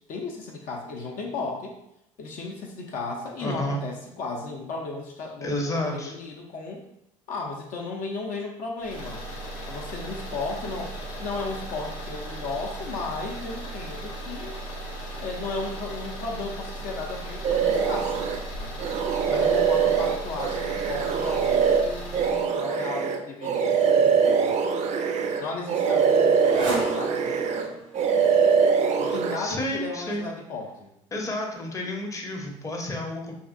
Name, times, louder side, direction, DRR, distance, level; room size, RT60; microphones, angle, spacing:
voice 1, 0.1-1.8 2.2-6.9 7.3-9.2 9.6-10.9 11.2-14.6 15.2-18.3 18.6-18.8 19.3-24.8 25.4-27.8 29.0-30.9, left 3 dB, 60° left, 0 dB, 0.5 m, -35 dB
voice 2, 3.4-3.8 5.4-6.1 29.0-30.3 31.1-33.4, left 1 dB, 20° left, 0 dB, 0.6 m, -31 dB
sound 1, 8.8-22.5, right 1 dB, 85° left, 0.8 m, -37 dB
sound 2, 17.4-18.4 18.8-25.4 25.7-27.7 27.9-29.4, right 6 dB, 45° right, 0.4 m, -23 dB
Motorcycle, 25.1-29.9, right 2 dB, 90° right, 0.7 m, -39 dB
2.7 x 2.5 x 2.5 m, 0.80 s
hypercardioid pair, 70°, 16 cm